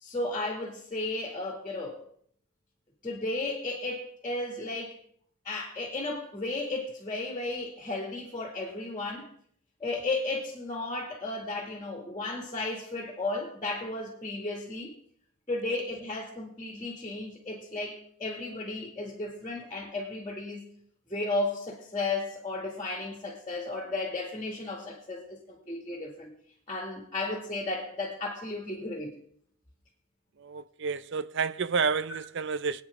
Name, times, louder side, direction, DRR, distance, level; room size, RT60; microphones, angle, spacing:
voice 1, 0.0-2.0 3.0-4.9 5.4-9.3 9.8-14.9 15.5-20.6 21.1-26.3 26.7-29.2, left 2 dB, 20° left, 2.3 m, -34 dB
voice 2, 30.4-32.8, right 5 dB, 55° right, 0.5 m, -30 dB
25.5 x 9.3 x 3.7 m
head